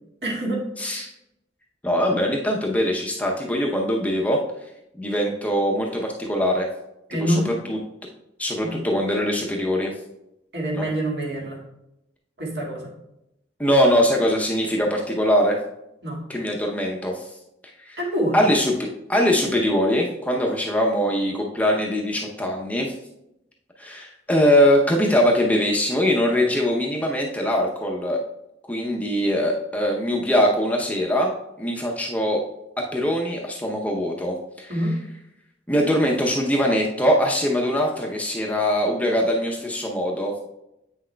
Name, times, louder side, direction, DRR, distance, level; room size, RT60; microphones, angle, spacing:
voice 1, 0.2-0.7 7.1-7.5 8.6-8.8 10.5-11.6 12.4-12.9 16.0-16.2 18.0-18.4 34.7-35.0, right 1 dB, 60° right, -2 dB, 1.8 m, -25 dB
voice 2, 1.8-4.4 5.0-6.7 7.3-7.8 8.4-9.9 10.7-10.9 13.6-15.6 16.3-17.3 17.8-18.0 18.3-22.9 23.8-28.2 28.7-31.3 31.6-32.4 32.8-34.7 35.7-40.3, equal, 10° left, -1 dB, 0.6 m, -22 dB
8.4 x 6.1 x 2.2 m, 0.86 s
head